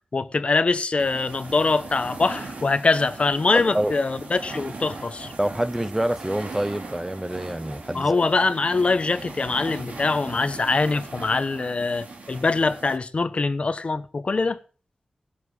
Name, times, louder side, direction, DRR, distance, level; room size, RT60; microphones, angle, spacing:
voice 1, 0.1-5.3 7.9-14.6, left 3 dB, 50° left, 1.1 m, -23 dB
sound 1, 1.0-13.0, right 3 dB, 75° right, 2.6 m, -39 dB
voice 2, 3.5-3.9 5.4-8.2, right 1 dB, 10° right, 0.7 m, -26 dB
17.0 x 7.4 x 6.3 m
wide cardioid pair, 90°, 3 cm